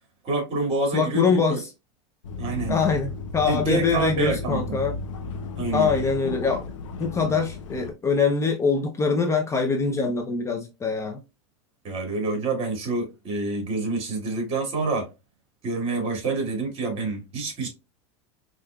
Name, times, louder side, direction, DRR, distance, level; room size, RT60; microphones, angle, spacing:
voice 1, 0.2-1.6 2.4-2.8 3.4-4.8 5.6-5.9 11.8-15.1 15.6-17.7, right 3 dB, 40° right, 2.1 m, -27 dB
voice 2, 0.9-1.6 2.7-5.0 5.7-6.6 7.0-11.2, left 4 dB, 20° left, 0.6 m, -23 dB
sound 1, 2.2-7.9, left 4 dB, 85° left, 0.7 m, -34 dB
5.5 x 2.6 x 2.2 m
supercardioid pair, 125°, 16 cm